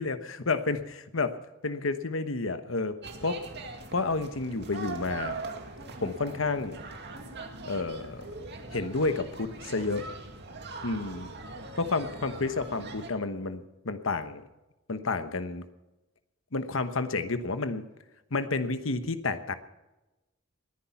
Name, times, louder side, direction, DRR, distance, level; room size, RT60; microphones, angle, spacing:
voice 1, 0.0-3.5 3.9-5.4 6.0-6.8 7.6-8.3 8.7-10.1 10.8-11.3 11.8-14.4 14.9-15.6 16.5-17.8 18.3-19.6, left 3 dB, 80° left, 10 dB, 1.1 m, -30 dB
sound 1, 3.0-13.1, right 3 dB, 55° right, 2.3 m, -41 dB
20.5 x 10.0 x 5.8 m, 1.0 s
head